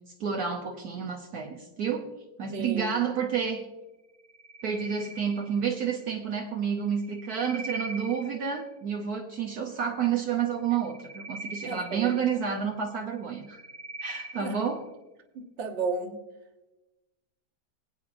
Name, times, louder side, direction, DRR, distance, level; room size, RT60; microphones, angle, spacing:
voice 1, 0.2-2.1 2.4-3.6 4.6-13.6 14.0-14.8, right 7 dB, 65° right, 2 dB, 1.4 m, -30 dB
voice 2, 2.5-3.0 11.6-12.4 14.4-14.6 15.3-16.2, right 4 dB, 45° right, 4 dB, 1.4 m, -34 dB
sound 1, 4.2-5.9 6.8-8.7 10.6-12.7 13.2-14.8, right 2 dB, 85° right, 2.3 m, -42 dB
24.0 x 8.6 x 2.6 m, 1.1 s
omnidirectional pair, 1.8 m